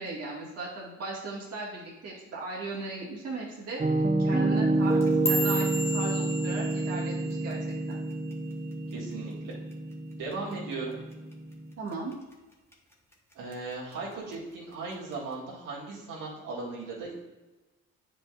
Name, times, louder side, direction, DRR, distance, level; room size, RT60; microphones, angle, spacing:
voice 1, 0.0-3.8 4.2-7.6 7.9-8.0 11.8-12.1, right 3 dB, 55° right, -4 dB, 1.9 m, -37 dB
Piano, 3.8-11.7, right 2 dB, 20° right, 0.5 m, -28 dB
sound 1, 4.8-9.2 9.5-9.9 10.3-10.7 11.1-11.3 11.9-12.3 12.7-13.5 13.9-14.3 15.1-15.2, equal, 10° left, 1.1 m, -35 dB
voice 2, 8.9-9.6 10.1-11.0 13.4-17.1, right 3 dB, 85° right, -6 dB, 2.1 m, -37 dB
8.9 x 5.2 x 2.5 m, 1.2 s
cardioid pair, 90°, 30 cm